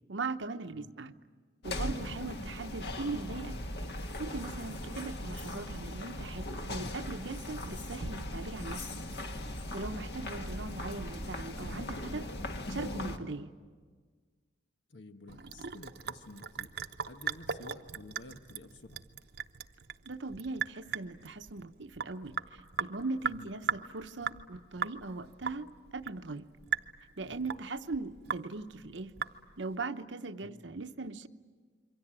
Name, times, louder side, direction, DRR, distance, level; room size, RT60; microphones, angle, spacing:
voice 1, 0.1-1.1 1.6-3.6 4.2-8.8 9.6-12.3 12.7-13.5 20.0-26.5 27.2-29.1 29.6-31.3, right 3 dB, 90° right, 9 dB, 1.0 m, -40 dB
sound 1, 1.6-13.2, left 1 dB, 60° left, 1.7 m, -39 dB
voice 2, 2.1-2.4 14.9-16.7 17.1-19.0 23.3-23.5 27.2-27.5 30.4-30.6, left 2 dB, 90° left, 7 dB, 1.5 m, -51 dB
Sink (filling or washing) / Drip, 15.3-29.7, right 6 dB, 60° right, 0.8 m, -39 dB
27.5 x 24.0 x 9.0 m, 1.5 s
head